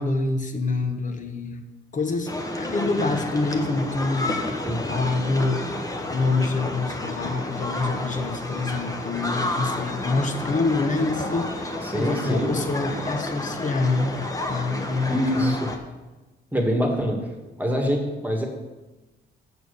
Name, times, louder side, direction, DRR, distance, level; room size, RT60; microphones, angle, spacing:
voice 1, 0.0-1.6 1.9-5.6 6.1-14.2 14.5-15.6, left 3 dB, 40° left, 6 dB, 1.2 m, -26 dB
sound 1, 2.3-15.8, left 1 dB, 15° left, 1.1 m, -30 dB
voice 2, 11.8-12.5 15.1-15.7 16.5-17.2 17.6-18.5, equal, 10° right, 1 dB, 1.7 m, -24 dB
7.2 x 6.2 x 6.6 m, 1.1 s
cardioid pair, 90°, 20 cm